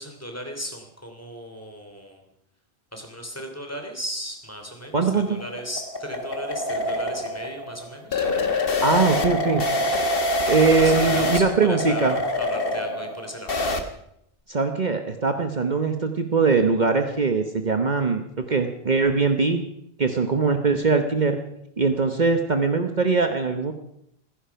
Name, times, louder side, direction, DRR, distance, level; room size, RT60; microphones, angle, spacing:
voice 1, 0.0-2.2 2.9-8.3 10.8-13.7, equal, 15° left, 3 dB, 3.0 m, -36 dB
sound 1, 4.8-13.8, left 2 dB, 60° left, 1.7 m, -25 dB
voice 2, 4.9-5.4 8.8-9.6 10.5-12.2 14.5-19.6 20.0-21.4 21.8-23.7, right 4 dB, 45° right, 6 dB, 1.2 m, -21 dB
15.5 x 15.5 x 5.8 m, 0.76 s
omnidirectional pair, 1.1 m